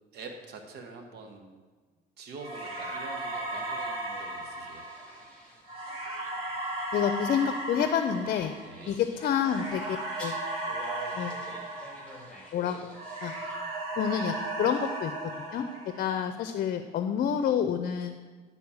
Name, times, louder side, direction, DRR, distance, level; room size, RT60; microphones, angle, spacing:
voice 1, 0.1-1.5 2.2-4.8 8.6-9.0, right 3 dB, 70° right, 4 dB, 1.3 m, -45 dB
sound 1, 2.4-12.6 12.9-16.3, right 2 dB, 35° right, 2.8 m, -36 dB
sound 2, 2.7-13.6, left 1 dB, 5° left, 2.5 m, -51 dB
voice 2, 6.9-8.5 8.9-10.4 11.1-11.3 12.5-12.8 13.2-13.3 14.0-15.1 15.5-15.7 16.0-18.2, left 8 dB, 55° left, 9 dB, 0.6 m, -28 dB
11.0 x 4.3 x 7.1 m, 1.4 s
cardioid pair, 110°, 17 cm